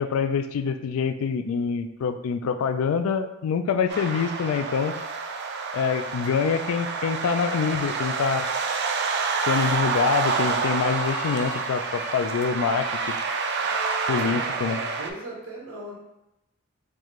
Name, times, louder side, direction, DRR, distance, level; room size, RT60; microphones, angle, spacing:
voice 1, 0.0-5.0 5.7-8.5 9.5-13.2 14.1-14.8, left 6 dB, 80° left, 10 dB, 0.3 m, -25 dB
sound 1, 3.9-15.1, right 4 dB, 50° right, 0.3 m, -28 dB
sound 2, 9.4-15.0, equal, 5° right, 0.5 m, -41 dB
voice 2, 14.1-16.0, right 2 dB, 80° right, -2 dB, 0.8 m, -38 dB
4.5 x 2.5 x 2.9 m, 0.92 s
head